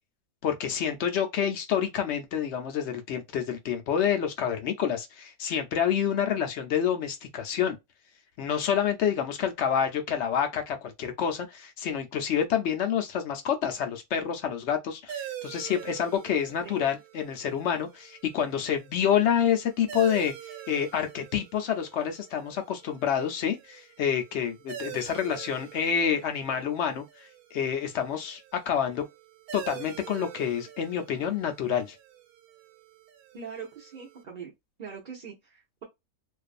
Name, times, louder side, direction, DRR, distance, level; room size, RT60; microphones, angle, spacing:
voice 1, 0.4-7.8 8.4-27.0 27.5-29.0 29.5-32.0, left 8 dB, 60° left, 0.8 m, -28 dB
sound 1, 15.1-34.2, right 10 dB, 85° right, 1.1 m, -45 dB
voice 2, 33.3-34.5 34.8-35.8, right 6 dB, 50° right, 0.6 m, -42 dB
2.6 x 2.4 x 2.4 m
omnidirectional pair, 1.5 m